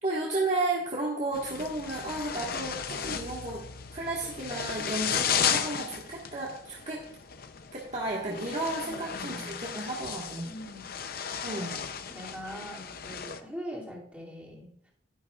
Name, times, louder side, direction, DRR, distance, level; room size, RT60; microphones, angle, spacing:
voice 1, 0.0-3.6 3.9-7.0 7.7-10.5 11.4-11.8, right 2 dB, 35° right, -4 dB, 1.6 m, -33 dB
sound 1, 1.3-13.4, left 7 dB, 50° left, 0.6 m, -35 dB
voice 2, 8.8-9.7 10.4-10.9 11.6-14.9, equal, 5° right, -5 dB, 2.6 m, -43 dB
11.5 x 11.0 x 2.4 m, 0.75 s
head